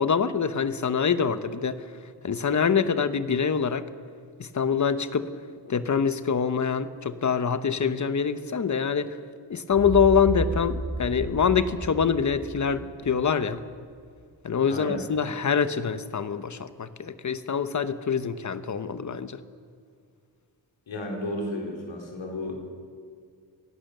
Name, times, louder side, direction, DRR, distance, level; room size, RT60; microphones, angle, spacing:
voice 1, 0.0-1.8 2.2-3.9 4.4-5.3 5.7-9.2 9.5-13.6 14.4-19.4, left 6 dB, 40° left, 12 dB, 1.0 m, -25 dB
sound 1, 9.7-13.6, right 1 dB, 5° right, 2.8 m, -33 dB
voice 2, 14.7-15.0 20.9-22.5, left 1 dB, 80° left, 1 dB, 4.5 m, -33 dB
27.5 x 16.5 x 6.8 m, 2.2 s
wide cardioid pair, 135°, 45 cm